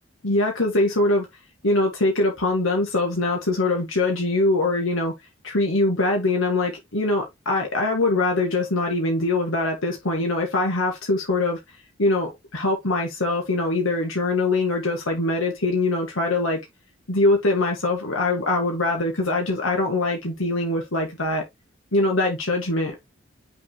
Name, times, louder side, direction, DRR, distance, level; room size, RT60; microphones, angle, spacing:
voice 1, 0.2-1.3 1.6-5.1 5.4-11.6 12.0-16.6 17.1-21.4 21.9-23.0, left 2 dB, 85° left, 1.9 m, -23 dB
6.1 x 3.9 x 4.1 m
head